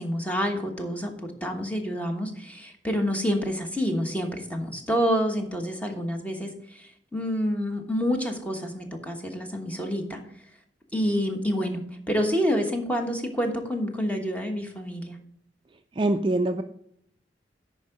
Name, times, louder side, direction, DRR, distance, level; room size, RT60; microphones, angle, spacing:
voice 1, 0.0-10.2 10.9-15.2, equal, 10° left, 3 dB, 1.1 m, -28 dB
voice 2, 16.0-16.6, right 2 dB, 25° right, 7 dB, 0.4 m, -23 dB
10.5 x 4.6 x 5.1 m, 0.69 s
head